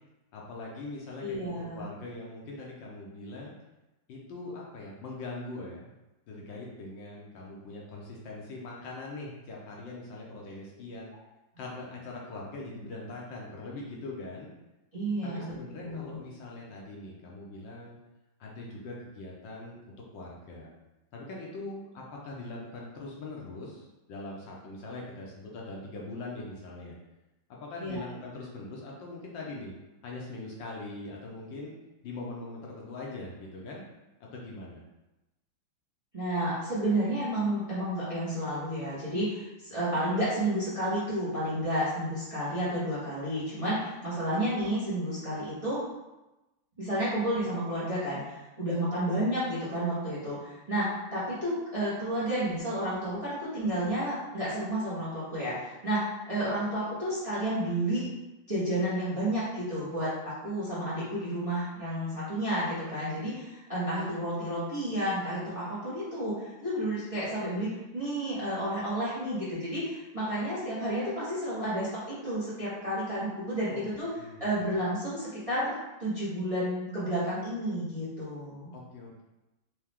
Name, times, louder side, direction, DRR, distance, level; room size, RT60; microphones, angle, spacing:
voice 1, 0.3-3.5 4.1-6.0 6.3-11.1 11.6-14.5 15.2-18.0 18.4-19.8 20.1-20.7 21.1-26.9 27.5-29.7 30.0-31.7 32.0-33.8 34.2-34.8 73.7-73.8 74.2-74.4 78.7-79.2, left 2 dB, 70° left, -3 dB, 1.4 m, -42 dB
voice 2, 1.2-1.8 14.9-16.2 27.8-28.0 36.1-45.8 46.8-58.0 58.5-60.1 60.4-74.1 74.4-75.7 76.0-78.7, right 1 dB, 20° right, -10 dB, 1.0 m, -31 dB
4.6 x 2.7 x 3.5 m, 1.0 s
omnidirectional pair, 2.2 m